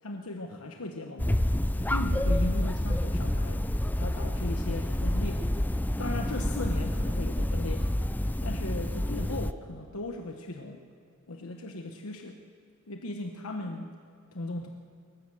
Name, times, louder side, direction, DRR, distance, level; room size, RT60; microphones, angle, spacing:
voice 1, 0.0-1.4 1.8-3.6 4.0-5.4 6.0-7.9 8.4-10.8 11.3-12.4 12.9-13.9 14.3-14.7, left 2 dB, 90° left, 3 dB, 1.2 m, -37 dB
sound 1, 1.2-9.5, left 1 dB, 10° left, 0.5 m, -28 dB
21.0 x 19.0 x 7.8 m, 2.3 s
head